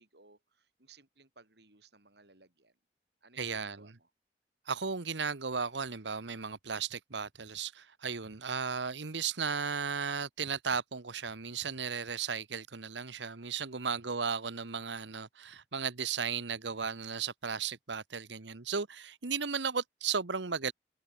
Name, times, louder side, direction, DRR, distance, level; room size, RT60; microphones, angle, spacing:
voice 1, 0.0-2.8 3.2-4.1 14.0-14.2, right 3 dB, 70° right, 4.4 m, -61 dB
voice 2, 3.4-3.9 4.7-20.7, right 6 dB, 90° right, 1.2 m, -35 dB
head